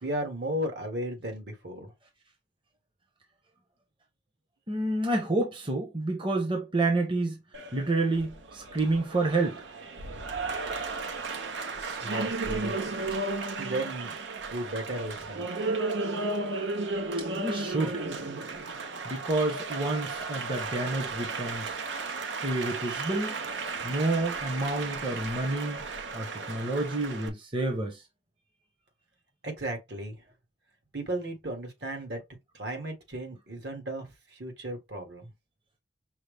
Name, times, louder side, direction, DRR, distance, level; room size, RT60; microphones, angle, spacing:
voice 1, 0.0-1.9 11.8-13.0 13.6-14.1 14.5-15.4 29.4-30.2 30.9-32.2 32.5-35.3, right 1 dB, 65° right, 1.5 m, -35 dB
voice 2, 4.7-7.4 7.7-9.6 17.3-18.0 19.0-21.7 22.4-23.4 23.8-25.8 26.1-28.0, right 2 dB, 25° right, 0.8 m, -29 dB
Applause, 7.5-27.3, right 3 dB, 85° right, 0.8 m, -34 dB
5.5 x 2.0 x 3.3 m
head